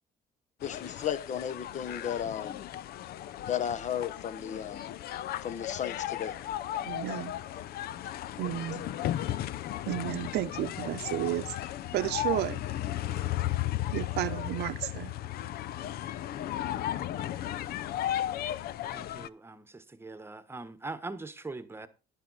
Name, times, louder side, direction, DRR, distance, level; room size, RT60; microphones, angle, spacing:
sound 1, 0.6-19.3, left 12 dB, 65° left, 0.6 m, -35 dB
voice 1, 0.6-2.6 3.5-4.9 5.4-6.3, left 9 dB, 45° left, 1.0 m, -34 dB
voice 2, 6.8-7.3 8.4-8.9 9.9-11.5 11.9-12.6 13.9-15.1, right 14 dB, 75° right, 0.8 m, -32 dB
voice 3, 18.9-21.9, right 3 dB, 15° right, 1.1 m, -42 dB
11.0 x 10.0 x 4.0 m
cardioid pair, 110°, 17 cm